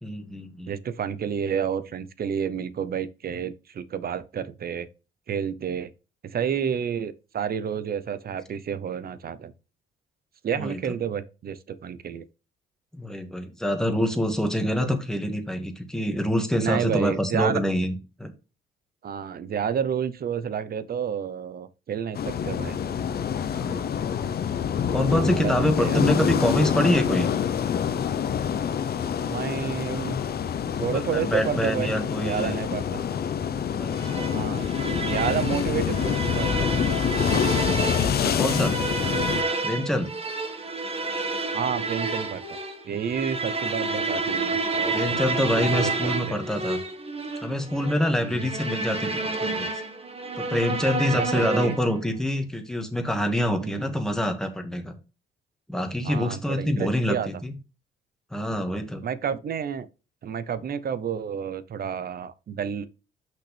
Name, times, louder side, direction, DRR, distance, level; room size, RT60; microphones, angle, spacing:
voice 1, 0.0-0.7 10.5-10.8 12.9-18.3 23.5-23.8 24.9-27.3 30.8-32.6 33.8-34.3 38.0-38.8 39.6-40.1 44.9-46.8 47.4-49.7 50.4-54.9 55.7-57.5 58.3-59.0, equal, 5° left, 1.7 m, -26 dB
voice 2, 0.7-4.9 5.3-5.9 6.2-9.5 10.4-12.3 16.5-17.6 19.0-22.8 25.4-26.0 29.3-30.2 30.8-31.9 32.2-33.0 34.3-34.7 35.0-36.8 41.5-42.6 42.8-46.4 48.2-48.5 51.1-51.8 53.6-54.0 56.0-57.3 59.0-59.9 60.2-62.9, right 8 dB, 50° right, 0.8 m, -30 dB
sound 1, 22.1-39.4, left 8 dB, 50° left, 0.8 m, -26 dB
sound 2, 34.0-52.0, right 3 dB, 30° right, 1.5 m, -30 dB
6.1 x 5.8 x 3.4 m
cardioid pair, 90°, 20 cm